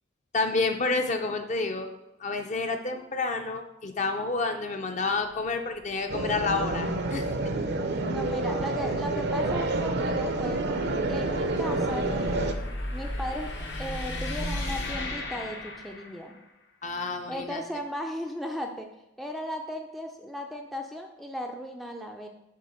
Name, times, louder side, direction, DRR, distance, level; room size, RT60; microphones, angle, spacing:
voice 1, 0.3-1.9 2.2-7.3 16.8-17.6, left 3 dB, 40° left, 5 dB, 0.6 m, -29 dB
sound 1, 5.0-16.4, left 1 dB, 65° left, 1.1 m, -38 dB
sound 2, 6.1-12.5, right 2 dB, 60° right, 0.6 m, -28 dB
voice 2, 7.6-10.7 11.1-12.1 12.9-13.5 13.8-16.4 17.3-18.9 19.2-22.3, equal, ahead, 2 dB, 0.4 m, -36 dB
7.6 x 3.4 x 5.7 m, 0.90 s
head